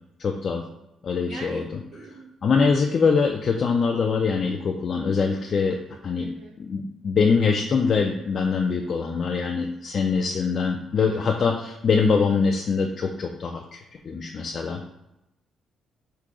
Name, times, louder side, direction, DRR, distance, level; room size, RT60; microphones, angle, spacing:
voice 1, 0.2-0.6 1.0-1.8 2.4-6.3 6.6-13.6 14.0-14.8, left 5 dB, 40° left, 1 dB, 0.4 m, -23 dB
voice 2, 1.2-1.6 1.9-2.3 6.2-6.5 11.1-11.5, right 3 dB, 70° right, 0 dB, 1.1 m, -41 dB
3.7 x 2.8 x 4.7 m, 0.87 s
cardioid pair, 160°, 0 cm